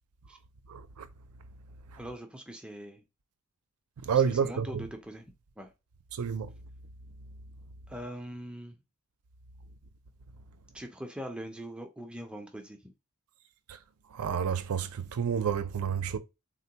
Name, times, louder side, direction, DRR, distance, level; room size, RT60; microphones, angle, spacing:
voice 1, 0.7-1.1 4.0-4.8 6.1-6.5 13.7-13.8 14.1-16.2, right 7 dB, 85° right, 0.4 m, -29 dB
voice 2, 2.0-3.0 4.1-5.2 5.6-5.7 7.9-8.8 10.7-12.9, equal, 5° right, 0.4 m, -42 dB
3.6 x 2.2 x 2.7 m
head